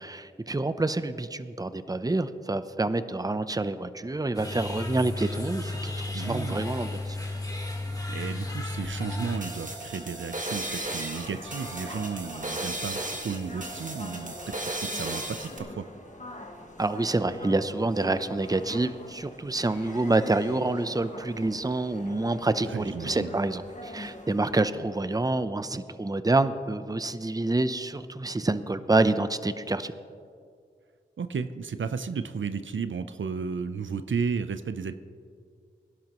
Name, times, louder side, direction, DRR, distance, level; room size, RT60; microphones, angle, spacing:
voice 1, 0.0-7.2 16.8-29.9, right 2 dB, 20° right, 12 dB, 0.7 m, -27 dB
sound 1, 4.3-9.4, left 2 dB, 20° left, 2.0 m, -33 dB
voice 2, 6.1-6.7 8.1-15.9 22.6-23.4 31.2-34.9, right 5 dB, 75° right, 11 dB, 0.6 m, -33 dB
sound 2, 9.2-15.6, right 1 dB, 40° right, 1.8 m, -35 dB
sound 3, 10.6-24.7, left 1 dB, 40° left, 1.8 m, -44 dB
23.5 x 11.0 x 3.1 m, 2.2 s
cardioid pair, 45°, 20 cm